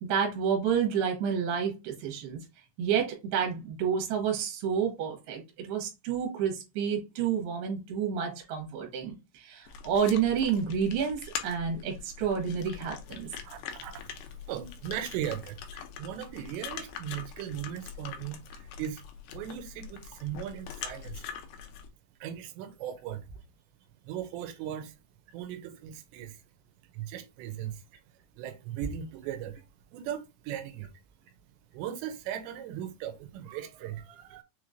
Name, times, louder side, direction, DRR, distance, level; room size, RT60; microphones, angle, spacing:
voice 1, 0.0-2.4 2.8-13.3, right 7 dB, 70° right, 3.0 m, -29 dB
sound 1, 9.7-21.9, left 7 dB, 80° left, 2.1 m, -43 dB
voice 2, 13.4-14.1 14.5-15.6 16.0-19.0 19.3-21.2 22.2-23.2 24.1-24.9 25.3-26.4 27.0-27.7 28.4-29.6 29.9-30.9 31.7-34.4, right 10 dB, 85° right, 2.9 m, -38 dB
6.7 x 3.0 x 2.5 m
omnidirectional pair, 5.0 m